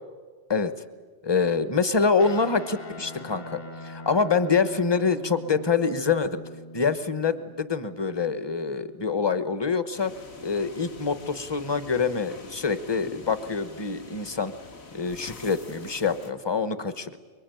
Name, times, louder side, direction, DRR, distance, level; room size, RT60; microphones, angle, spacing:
voice 1, 1.2-6.4 6.7-10.1 10.4-14.5 14.9-17.2, left 5 dB, 25° left, 13 dB, 1.1 m, -25 dB
Guitar, 2.2-9.8, left 1 dB, 40° left, 1.9 m, -43 dB
sound 1, 9.9-16.3, left 4 dB, 65° left, 2.1 m, -45 dB
24.5 x 23.0 x 9.2 m, 1.5 s
omnidirectional pair, 1.2 m